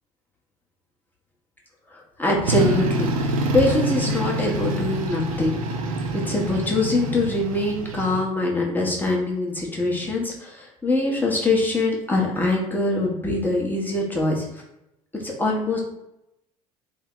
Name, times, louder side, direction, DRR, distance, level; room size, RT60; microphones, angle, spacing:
voice 1, 1.9-5.5 6.1-14.5 15.1-15.8, left 2 dB, 10° left, -2 dB, 1.1 m, -23 dB
sound 1, 2.4-8.2, right 1 dB, 80° right, 0.5 m, -26 dB
3.4 x 2.1 x 3.7 m, 0.85 s
figure-of-eight pair, 60°, 18 cm